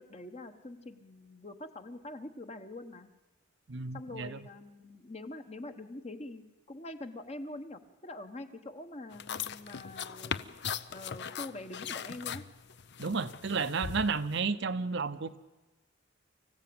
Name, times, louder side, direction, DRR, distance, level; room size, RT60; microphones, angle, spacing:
voice 1, 0.0-3.1 3.9-10.6 10.9-12.4, left 2 dB, 30° left, 8 dB, 1.2 m, -45 dB
voice 2, 3.7-4.4 13.0-15.4, right 4 dB, 60° right, 11 dB, 0.8 m, -32 dB
sound 1, 9.1-14.4, left 7 dB, 55° left, 0.7 m, -39 dB
25.0 x 15.5 x 8.8 m, 1.2 s
head